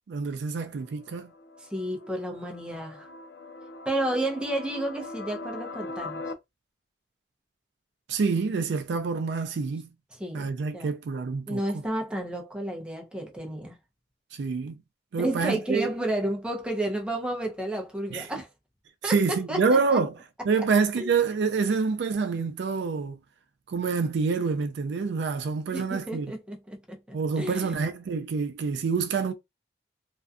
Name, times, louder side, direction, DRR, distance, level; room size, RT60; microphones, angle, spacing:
voice 1, 0.1-1.3 8.1-9.9 10.3-11.6 14.3-14.8 15.1-15.9 18.1-18.3 19.0-20.2 20.4-23.2 23.7-26.3 27.1-29.3, right 5 dB, 80° right, 0.4 m, -27 dB
sound 1, 0.8-6.3, left 3 dB, 80° left, 0.4 m, -41 dB
voice 2, 1.7-3.1 3.9-6.2 10.2-10.9 11.5-13.8 15.2-18.5 19.0-19.6 19.9-20.0 21.0-21.1 25.7-27.7, right 1 dB, 5° right, 0.5 m, -31 dB
2.5 x 2.2 x 2.4 m
head